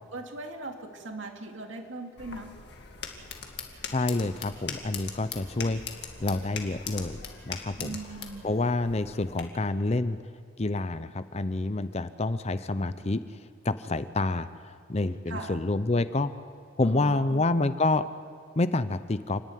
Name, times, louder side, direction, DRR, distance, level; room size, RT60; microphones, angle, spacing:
voice 1, 0.1-2.5 7.7-8.5 15.3-15.7 16.8-17.4, right 2 dB, 70° right, 3 dB, 2.4 m, -40 dB
sound 1, 2.2-9.4, left 6 dB, 55° left, 2.1 m, -41 dB
voice 2, 3.9-5.8 6.2-8.0 8.4-10.2 10.6-13.2 13.6-16.3 16.8-18.0 18.6-19.4, left 2 dB, 30° left, 13 dB, 0.6 m, -28 dB
30.0 x 11.0 x 9.3 m, 2.1 s
head